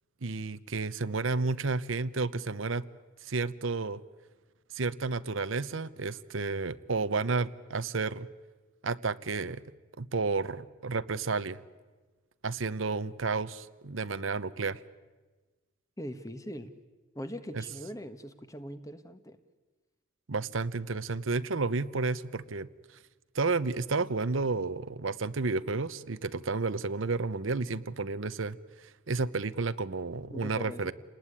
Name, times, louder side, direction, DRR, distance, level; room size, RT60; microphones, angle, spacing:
voice 1, 0.2-2.8 3.2-4.0 4.7-8.3 8.8-9.6 10.0-11.6 12.4-14.8 17.5-17.6 20.3-22.7 23.3-28.6 29.1-30.9, right 3 dB, 85° right, 14 dB, 0.9 m, -31 dB
voice 2, 16.0-16.7 17.1-19.4 30.3-30.9, equal, 15° left, 10 dB, 1.2 m, -41 dB
29.0 x 19.5 x 9.9 m, 1.3 s
head